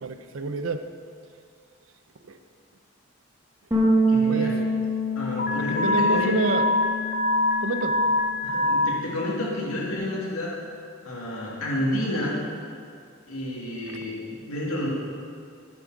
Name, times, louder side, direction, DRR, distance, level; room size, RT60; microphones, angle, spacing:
voice 1, 0.0-0.9 2.3-2.4 4.3-4.6 5.6-6.7 7.6-8.1, right 3 dB, 70° right, 8 dB, 0.6 m, -28 dB
sound 1, 3.7-8.3 8.5-10.0, right 1 dB, 15° right, 1.5 m, -27 dB
voice 2, 4.1-4.6 5.1-6.6 8.4-10.6 11.0-12.4 13.3-14.9, left 1 dB, 85° left, -4 dB, 2.4 m, -30 dB
Alarm, 5.4-8.9, left 2 dB, 40° left, 0.7 m, -24 dB
10.5 x 7.5 x 4.8 m, 2.3 s
head